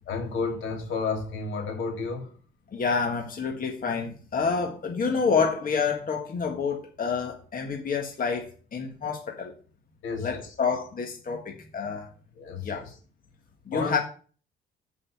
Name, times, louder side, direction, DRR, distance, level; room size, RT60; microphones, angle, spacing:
voice 1, 0.1-2.3 10.0-10.5 12.4-12.9 13.7-14.0, left 4 dB, 80° left, 2.7 m, -31 dB
voice 2, 2.7-9.5 10.2-12.1 12.6-12.8 13.7-14.0, left 5 dB, 45° left, 1.7 m, -28 dB
6.9 x 5.6 x 6.9 m
cardioid pair, 90°, 20 cm